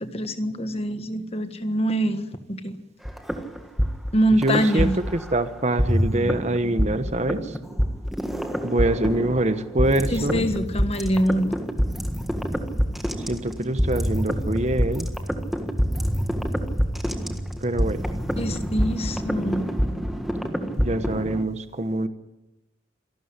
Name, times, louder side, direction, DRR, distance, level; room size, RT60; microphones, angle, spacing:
voice 1, 0.0-2.8 4.1-4.9 10.1-11.6 18.4-19.7, equal, 30° left, 9 dB, 1.5 m, -24 dB
sound 1, 3.1-5.4 5.8-21.4, equal, ahead, 1.6 m, -26 dB
voice 2, 4.3-7.5 8.6-10.5 13.3-15.1 17.6-18.0 20.8-22.1, right 1 dB, 35° right, 11 dB, 1.1 m, -25 dB
26.5 x 12.5 x 9.8 m, 0.99 s
head